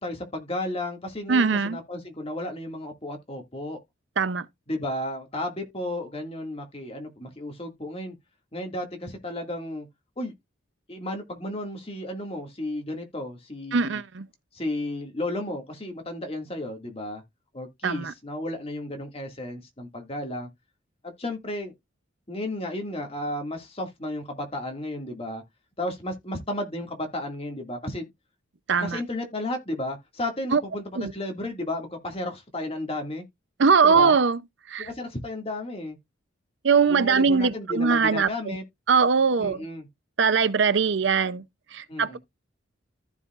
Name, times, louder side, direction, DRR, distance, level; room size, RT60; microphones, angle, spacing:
voice 1, 0.0-3.8 4.7-8.2 8.5-9.9 10.2-10.3 10.9-14.0 14.5-17.2 17.5-20.5 21.0-21.7 22.3-25.4 25.8-28.1 28.8-33.2 33.8-34.2 34.8-36.0 36.9-38.6 39.4-39.9 41.9-42.2, left 1 dB, 30° left, 2.0 m, -33 dB
voice 2, 1.3-1.8 4.2-4.5 13.7-14.3 17.8-18.1 28.7-29.0 30.5-30.6 31.0-31.1 33.6-34.4 34.7-34.9 36.6-38.6 38.9-39.6 40.2-41.4 41.7-42.2, right 5 dB, 65° right, 0.6 m, -21 dB
14.5 x 4.9 x 2.4 m
head